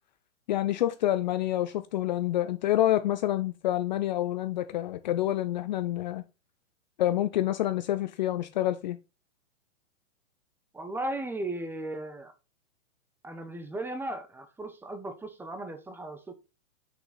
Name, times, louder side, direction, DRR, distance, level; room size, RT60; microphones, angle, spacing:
voice 1, 0.5-6.2 7.0-9.0, left 13 dB, 35° left, 0.5 m, -27 dB
voice 2, 10.7-12.3 13.2-16.3, right 1 dB, 5° right, 0.8 m, -36 dB
6.4 x 6.1 x 4.0 m
hypercardioid pair, 135°, 41 cm